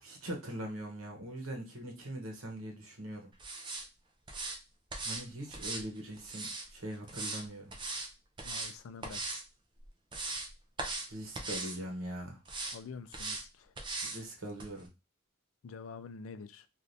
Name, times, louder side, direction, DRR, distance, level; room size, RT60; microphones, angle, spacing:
voice 1, 0.0-3.3 5.0-7.7 11.1-12.4 14.0-14.9, right 1 dB, 75° right, 2 dB, 1.1 m, -42 dB
sound 1, 3.4-3.8 4.3-4.6 4.9-5.2 5.5-6.7 7.1-7.4 7.7-8.1 8.4-8.7 9.0-9.4 9.8-10.5 10.8-11.1 11.3-11.8 12.4-12.8 13.1-13.4 13.8-14.2 14.6-14.7, right 3 dB, 20° right, 0.5 m, -39 dB
voice 2, 8.4-9.2 12.7-13.7 15.6-16.7, left 5 dB, 75° left, 11 dB, 0.4 m, -47 dB
3.2 x 2.5 x 2.6 m, 0.26 s
head